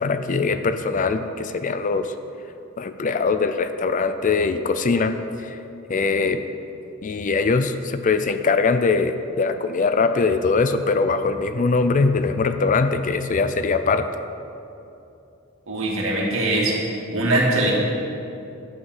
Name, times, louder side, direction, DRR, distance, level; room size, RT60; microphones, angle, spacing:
voice 1, 0.0-2.1 2.8-5.2 5.9-6.4 7.0-14.1, left 4 dB, 35° left, 9 dB, 0.4 m, -21 dB
voice 2, 15.7-16.7 17.1-17.7, right 1 dB, 65° right, -3 dB, 2.3 m, -21 dB
11.0 x 5.8 x 7.4 m, 2.7 s
head